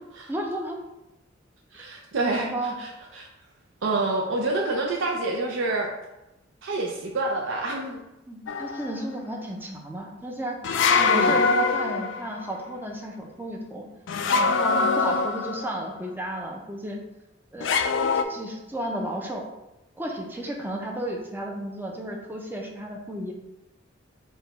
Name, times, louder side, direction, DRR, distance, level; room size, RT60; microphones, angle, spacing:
voice 1, 0.3-0.8 2.3-2.8 8.3-10.6 10.9-13.9 14.4-17.0 17.5-17.7 18.3-19.5 20.0-23.3, right 1 dB, 10° right, 0 dB, 0.5 m, -33 dB
voice 2, 1.8-2.5 3.2-3.3 3.8-5.9 6.6-8.0 11.1-11.3, right 2 dB, 65° right, -1 dB, 0.5 m, -27 dB
sound 1, 8.5-9.0 10.6-12.4 14.1-15.8 17.6-18.2, left 4 dB, 60° left, 0.3 m, -23 dB
4.6 x 2.3 x 4.0 m, 0.94 s
head